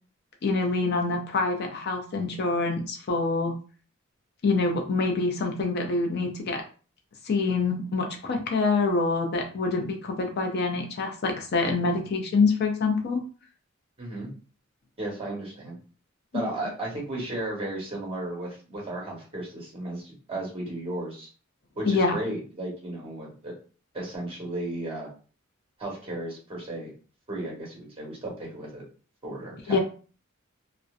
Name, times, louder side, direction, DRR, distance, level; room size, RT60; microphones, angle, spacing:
voice 1, 0.4-3.6 4.4-6.6 7.2-13.2 16.3-16.4 21.8-22.2 29.7-29.8, left 3 dB, 50° left, 3 dB, 0.4 m, -26 dB
voice 2, 14.0-14.3 15.0-15.8 16.3-21.3 21.7-23.5 23.9-25.1 25.8-26.9 27.3-28.8 29.2-29.8, right 1 dB, 25° right, -3 dB, 1.1 m, -34 dB
2.6 x 2.0 x 2.4 m, 0.38 s
head